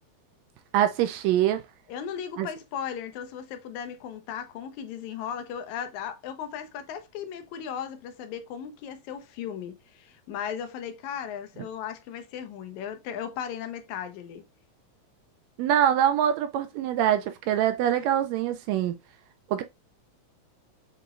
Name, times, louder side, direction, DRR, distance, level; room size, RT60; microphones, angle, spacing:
voice 1, 0.7-1.6 2.4-2.5 15.6-18.9 19.5-19.6, right 10 dB, 80° right, 1.7 m, -24 dB
voice 2, 1.9-14.4, left 8 dB, 85° left, 2.1 m, -36 dB
6.7 x 3.0 x 2.4 m
omnidirectional pair, 3.3 m